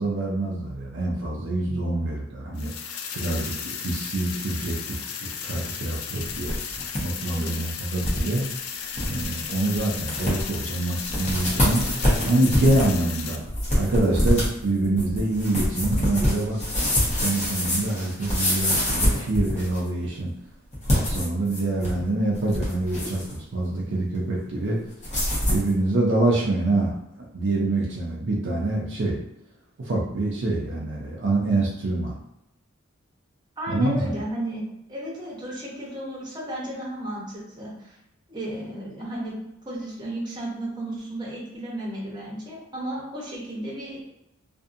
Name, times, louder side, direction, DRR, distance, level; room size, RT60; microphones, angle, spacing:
voice 1, 0.0-2.7 3.2-6.5 7.0-8.5 9.0-11.9 12.3-13.4 13.7-16.6 17.1-20.3 20.9-24.8 25.5-29.2 29.8-32.1 33.7-34.0, right 2 dB, 60° right, -3 dB, 0.5 m, -25 dB
sound 1, 2.5-13.4, left 7 dB, 85° left, 0.4 m, -35 dB
sound 2, 6.2-7.0 7.3-7.4 8.0-8.2 8.6-8.7 9.0-9.3 9.8-9.9 10.1-10.6 11.0-19.9 20.7-22.0 22.3-23.3 25.0-25.7, left 1 dB, 35° left, 1.0 m, -25 dB
voice 2, 33.6-34.6 34.9-38.0 38.3-39.3 39.6-44.1, right 1 dB, 20° right, -5 dB, 0.8 m, -34 dB
2.6 x 2.6 x 2.5 m, 0.84 s
head